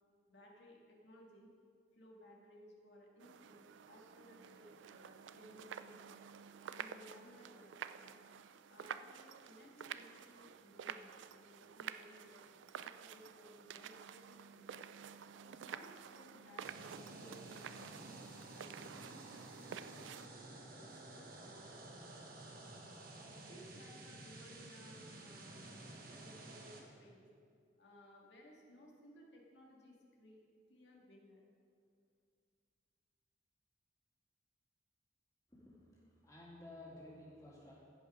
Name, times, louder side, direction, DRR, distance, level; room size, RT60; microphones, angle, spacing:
voice 1, 0.3-1.5 1.9-6.2 6.7-8.2 8.7-14.7 15.4-18.1 18.5-20.4 20.7-22.5 23.2-27.3 27.8-30.4 30.7-31.4, equal, 70° left, -2 dB, 2.0 m, -60 dB
sound 1, 3.2-20.3, right 8 dB, 80° right, 0.4 m, -50 dB
sound 2, 16.6-26.8, right 2 dB, 50° right, 1.1 m, -53 dB
voice 2, 35.5-37.8, left 1 dB, 15° left, -6 dB, 2.3 m, -55 dB
16.0 x 5.5 x 5.0 m, 2.2 s
head